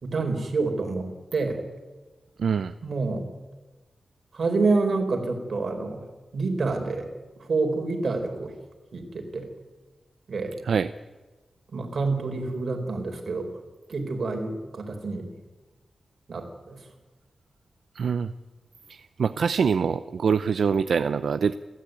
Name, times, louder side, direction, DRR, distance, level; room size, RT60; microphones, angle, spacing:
voice 1, 0.0-1.1 1.3-1.6 2.8-3.3 4.3-6.0 6.3-7.1 7.4-8.5 8.9-9.5 10.3-10.5 11.7-13.5 13.9-15.3 16.3-16.8, right 3 dB, 55° right, 3 dB, 4.4 m, -27 dB
voice 2, 2.4-2.7 10.6-10.9 17.9-18.3 18.9-21.5, right 6 dB, 80° right, 11 dB, 0.7 m, -24 dB
30.0 x 13.5 x 9.3 m, 1.2 s
wide cardioid pair, 170°, 0 cm